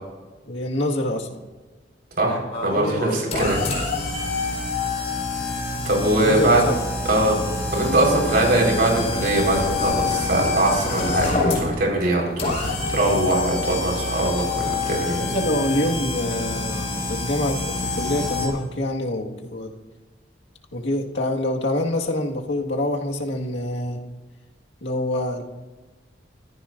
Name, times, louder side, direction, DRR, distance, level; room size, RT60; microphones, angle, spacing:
voice 1, 0.4-1.4 6.2-6.8 15.2-19.7 20.7-24.0 24.8-25.4, left 1 dB, 90° left, 1 dB, 1.9 m, -26 dB
voice 2, 2.2-3.6 5.8-6.6 7.1-7.4 7.7-15.2, right 1 dB, 60° right, -1 dB, 4.7 m, -22 dB
sound 1, 2.5-18.5, left 3 dB, 40° left, 4.8 m, -26 dB
23.5 x 14.5 x 2.6 m, 1.3 s
head